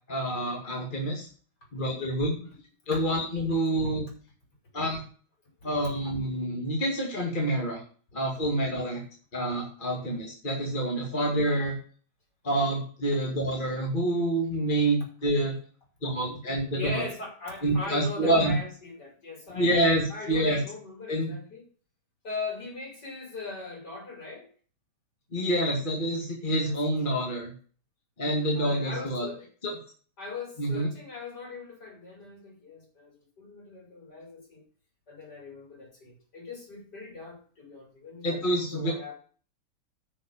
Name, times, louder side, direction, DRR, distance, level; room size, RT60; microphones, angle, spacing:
voice 1, 0.1-1.3 1.7-2.4 2.9-4.0 4.7-5.0 5.6-7.8 8.1-9.0 9.3-11.7 12.4-15.5 16.0-17.0 17.6-18.5 19.5-20.6 21.1-21.3 25.3-27.5 28.2-29.3 29.6-29.8 30.6-30.9 38.2-38.9, right 1 dB, 25° left, -2 dB, 2.4 m, -27 dB
voice 2, 16.7-21.6 22.2-24.5 26.5-26.8 27.1-27.3 28.6-29.5 30.2-34.6 35.1-39.1, left 3 dB, 50° left, -1 dB, 5.9 m, -40 dB
10.0 x 6.5 x 7.1 m, 0.42 s
omnidirectional pair, 2.3 m